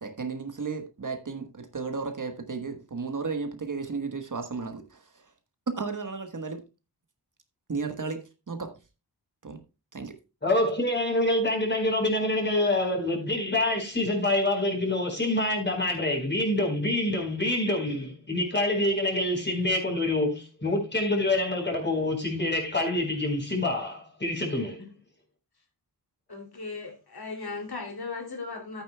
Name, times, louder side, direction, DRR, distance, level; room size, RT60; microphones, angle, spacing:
voice 1, 0.0-5.3 5.7-6.6 7.7-8.7 9.4-9.6 9.9-10.2, right 4 dB, 50° right, 1.3 m, -34 dB
voice 2, 10.4-24.8, left 1 dB, 25° left, 4.4 m, -26 dB
voice 3, 26.3-28.8, left 4 dB, 60° left, 2.8 m, -37 dB
13.0 x 9.2 x 2.3 m
wide cardioid pair, 110°, 42 cm